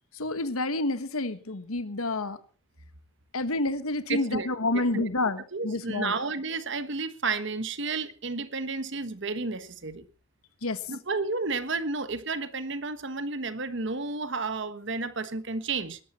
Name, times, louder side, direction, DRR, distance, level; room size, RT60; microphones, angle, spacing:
voice 1, 0.2-2.4 3.3-5.4 5.6-6.1 10.6-10.8, left 2 dB, 85° left, 1.5 m, -28 dB
voice 2, 4.1-4.5 4.7-10.1 10.9-16.0, right 3 dB, 55° right, 1.3 m, -32 dB
20.0 x 12.0 x 4.3 m
head